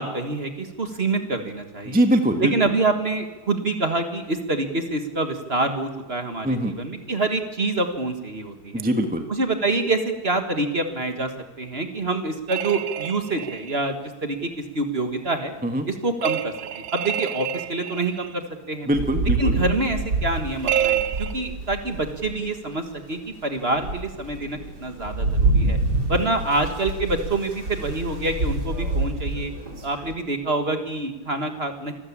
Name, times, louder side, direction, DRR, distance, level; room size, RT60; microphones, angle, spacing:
voice 1, 0.0-2.0 2.4-8.9 9.3-11.3 11.6-15.5 15.9-18.9 19.4-25.8 26.1-29.5 29.8-31.9, right 2 dB, 30° right, 6 dB, 1.7 m, -26 dB
voice 2, 1.9-2.5 6.4-6.7 8.7-9.2 15.6-15.9 18.9-19.5, right 1 dB, 5° right, 6 dB, 1.1 m, -22 dB
sound 1, 12.5-13.8 16.2-18.3 20.6-21.3, right 10 dB, 80° right, 1.8 m, -28 dB
Rain, 18.9-22.4 23.0-23.1 23.6-30.1, right 2 dB, 55° right, 3.9 m, -27 dB
25.5 x 13.5 x 8.6 m, 1.2 s
omnidirectional pair, 2.2 m